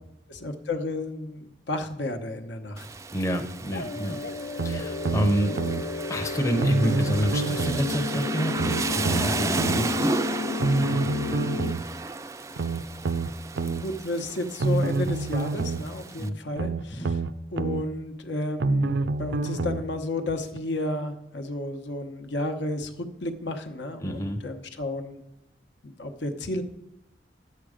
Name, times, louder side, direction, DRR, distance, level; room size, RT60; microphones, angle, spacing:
voice 1, 0.3-2.9 13.6-17.2 17.5-25.2 25.8-26.6, left 2 dB, 75° left, 6 dB, 0.9 m, -32 dB
Rain, 2.8-16.3, right 3 dB, 15° right, 0.3 m, -34 dB
voice 2, 3.1-4.2 4.6-5.6 6.1-10.2 16.2-16.3 17.0-17.1 24.0-24.4, equal, 15° left, 5 dB, 0.7 m, -28 dB
sound 1, 3.7-11.7, left 3 dB, 55° left, 0.4 m, -32 dB
sound 2, 4.6-5.8 6.6-7.9 8.6-9.8 10.6-11.8 12.6-13.8 14.6-15.8 16.6-17.8 18.6-19.9 20.6-20.7, right 3 dB, 80° right, 0.5 m, -27 dB
10.5 x 7.6 x 5.0 m, 0.85 s
head